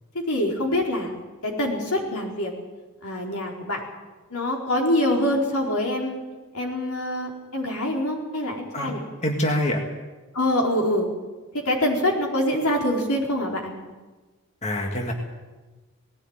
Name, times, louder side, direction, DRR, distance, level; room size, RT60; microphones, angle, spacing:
voice 1, 0.1-1.2 1.4-2.5 3.0-3.8 4.3-6.2 6.5-9.0 10.3-11.1 11.7-13.7, left 1 dB, 85° left, 0 dB, 4.5 m, -25 dB
voice 2, 9.2-9.8 14.6-15.1, left 1 dB, 30° left, 2 dB, 1.9 m, -25 dB
19.0 x 15.5 x 9.0 m, 1.2 s
head